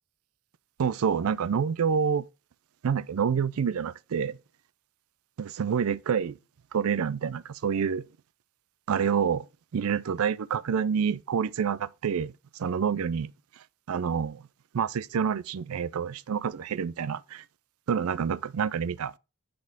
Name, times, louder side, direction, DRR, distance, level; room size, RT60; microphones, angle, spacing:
voice 1, 0.8-2.3 2.8-4.4 5.4-6.4 6.7-8.0 8.9-9.5 9.7-12.3 12.6-13.3 13.9-14.5 14.7-17.4 17.9-19.1, right 7 dB, 80° right, 0.4 m, -27 dB
6.6 x 4.1 x 3.6 m
head